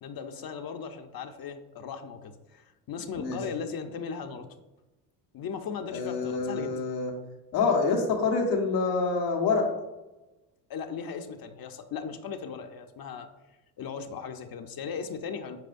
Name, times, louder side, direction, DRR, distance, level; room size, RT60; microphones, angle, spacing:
voice 1, 0.0-4.5 5.3-6.7 10.7-13.3 13.8-15.6, left 6 dB, 45° left, 6 dB, 0.8 m, -37 dB
voice 2, 5.9-7.1 7.5-9.7, left 4 dB, 90° left, 1 dB, 1.4 m, -26 dB
9.2 x 4.9 x 2.6 m, 1.1 s
supercardioid pair, 75°, 49 cm